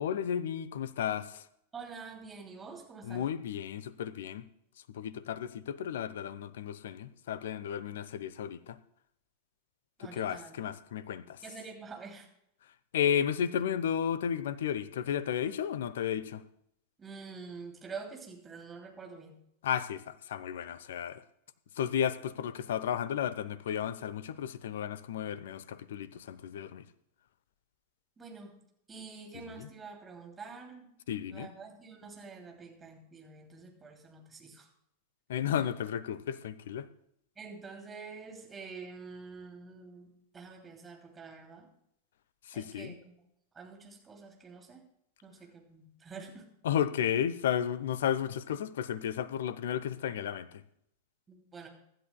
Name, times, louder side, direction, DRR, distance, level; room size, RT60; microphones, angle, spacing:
voice 1, 0.0-1.4 3.0-4.5 4.9-8.8 10.0-11.4 12.9-16.4 19.6-21.2 21.7-26.9 29.5-29.7 31.1-31.5 35.3-36.9 42.4-43.0 46.6-50.6, left 9 dB, 60° left, 16 dB, 0.7 m, -33 dB
voice 2, 1.7-3.3 10.0-10.5 11.4-12.3 17.0-19.4 28.2-28.6 28.9-30.9 31.3-34.7 35.5-35.7 37.4-41.7 42.5-43.1 43.5-44.8 45.2-46.5 51.3-51.7, right 4 dB, 20° right, 1 dB, 2.9 m, -47 dB
24.0 x 11.0 x 2.3 m, 0.75 s
figure-of-eight pair, 90°, 0 cm